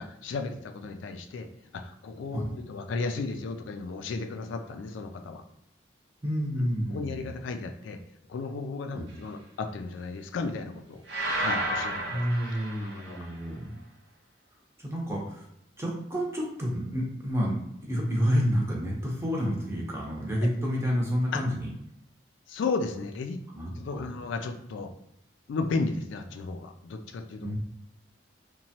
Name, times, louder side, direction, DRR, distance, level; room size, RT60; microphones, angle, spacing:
voice 1, 0.0-1.5 1.7-5.4 6.6-8.0 8.3-11.0 11.4-12.2 12.8-13.3 22.5-23.4 23.8-24.9 25.5-27.5, left 3 dB, 80° left, 6 dB, 0.3 m, -34 dB
voice 2, 6.2-7.3 8.9-9.0 12.1-13.7 14.8-15.4 15.8-21.7 23.5-24.1 27.4-27.6, equal, 15° right, -2 dB, 0.6 m, -29 dB
sound 1, 11.1-13.3, right 1 dB, 70° right, 0.6 m, -32 dB
2.9 x 2.2 x 2.7 m, 0.80 s
head